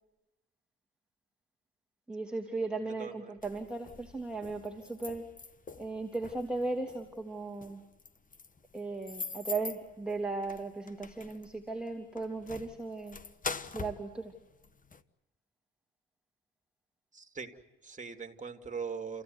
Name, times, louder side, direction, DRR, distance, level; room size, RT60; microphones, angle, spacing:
voice 1, 2.1-5.2 5.8-7.8 8.7-13.2 13.7-14.3, right 3 dB, 5° right, 1 dB, 2.9 m, -37 dB
voice 2, 2.9-3.3 17.1-19.2, right 5 dB, 25° right, 6 dB, 2.8 m, -41 dB
sound 1, 3.4-15.0, left 4 dB, 25° left, 1.3 m, -44 dB
29.5 x 16.0 x 9.6 m, 1.0 s
cardioid pair, 90°, 30 cm